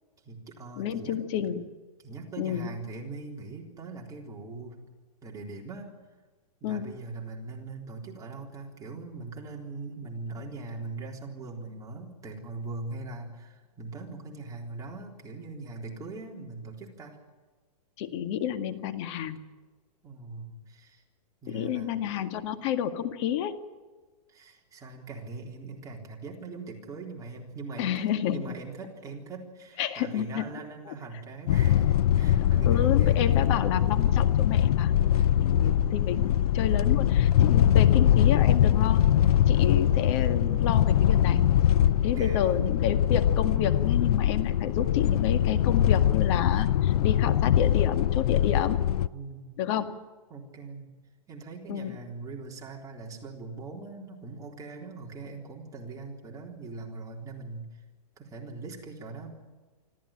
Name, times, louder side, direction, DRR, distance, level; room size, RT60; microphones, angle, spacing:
voice 1, 0.3-1.2 2.0-4.8 5.2-5.9 6.6-17.2 20.0-21.0 21.4-22.0 24.3-33.7 35.1-35.9 42.0-42.6 49.1-49.6 50.3-51.0 51.3-57.8 58.2-59.3, right 3 dB, 15° right, -1 dB, 3.8 m, -41 dB
voice 2, 0.8-1.7 2.4-2.7 6.6-6.9 18.0-19.4 21.5-23.5 27.8-28.4 29.8-30.4 30.9-31.0 32.7-34.9 35.4-39.0 39.5-41.4 42.0-48.8 49.6-49.9 51.7-52.0, left 9 dB, 45° left, 8 dB, 2.0 m, -30 dB
sound 1, 31.5-49.1, left 10 dB, 65° left, 0.7 m, -22 dB
26.0 x 14.5 x 8.9 m, 1.4 s
hypercardioid pair, 145°, 20 cm